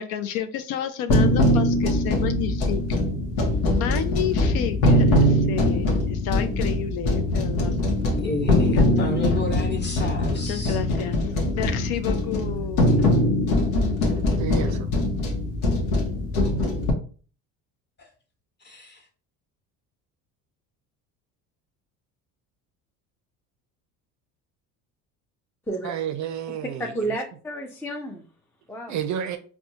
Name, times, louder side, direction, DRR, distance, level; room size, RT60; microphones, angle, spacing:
voice 1, 0.0-3.0 3.7-7.7 8.6-9.1 10.3-12.9, left 10 dB, 65° left, 0.5 m, -31 dB
sound 1, 1.1-16.9, left 1 dB, 85° left, 0.9 m, -22 dB
voice 2, 8.2-10.8 18.6-19.0, left 2 dB, 25° left, 1.0 m, -30 dB
voice 3, 14.4-14.9 25.8-27.2 28.9-29.4, right 9 dB, 45° right, 0.5 m, -31 dB
voice 4, 26.8-28.2 28.7-28.9, right 2 dB, 5° left, 0.4 m, -31 dB
4.2 x 2.2 x 2.7 m
supercardioid pair, 85°, 41 cm